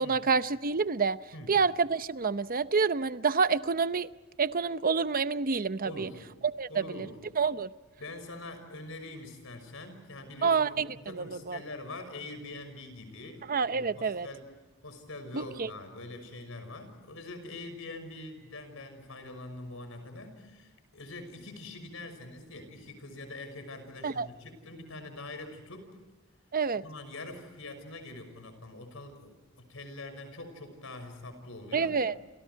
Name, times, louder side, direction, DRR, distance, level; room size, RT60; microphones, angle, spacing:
voice 1, 0.0-1.2 1.5-4.1 4.4-6.1 6.6-7.1 7.4-7.7 10.4-11.6 13.5-14.3 15.3-15.7 24.0-24.3 26.5-26.8 31.7-32.1, right 5 dB, 45° right, 13 dB, 0.8 m, -28 dB
voice 2, 5.8-6.3 6.7-7.2 8.0-14.5 14.8-25.9 26.7-32.0, left 2 dB, 70° left, 8 dB, 6.1 m, -44 dB
29.5 x 28.5 x 4.7 m, 1.3 s
head